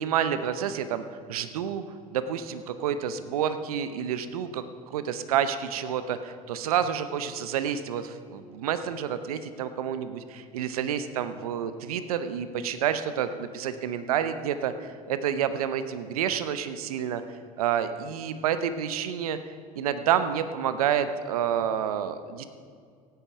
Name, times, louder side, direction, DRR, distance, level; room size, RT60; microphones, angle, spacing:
voice 1, 0.0-1.8 2.1-17.2 17.6-19.4 19.8-22.4, right 9 dB, 80° right, 11 dB, 0.7 m, -29 dB
15.5 x 9.3 x 4.8 m, 2.2 s
hypercardioid pair, 70°, 18 cm